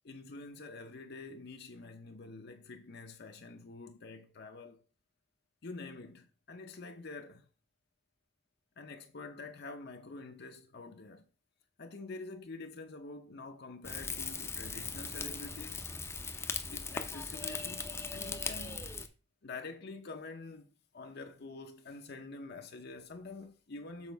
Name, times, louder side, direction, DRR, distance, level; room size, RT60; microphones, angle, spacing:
voice 1, 0.0-4.8 5.6-7.5 8.8-11.3 11.8-15.9 16.7-18.9 19.4-20.7 20.9-24.1, left 3 dB, 55° left, 0.7 m, -47 dB
Rain / Fire, 13.8-19.1, left 4 dB, 15° left, 0.6 m, -39 dB
7.2 x 4.9 x 4.6 m
head